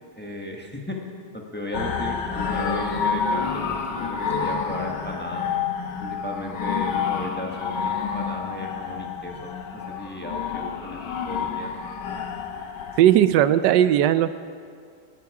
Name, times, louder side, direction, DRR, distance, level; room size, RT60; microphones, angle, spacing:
voice 1, 0.2-1.0 1.3-5.5 6.0-9.3 9.7-11.7, left 1 dB, 5° left, 0 dB, 1.2 m, -35 dB
sound 1, 1.7-13.0, left 6 dB, 85° left, 1.7 m, -29 dB
voice 2, 13.0-14.3, right 11 dB, 85° right, 13 dB, 1.2 m, -17 dB
17.5 x 12.0 x 4.8 m, 2.2 s
omnidirectional pair, 1.8 m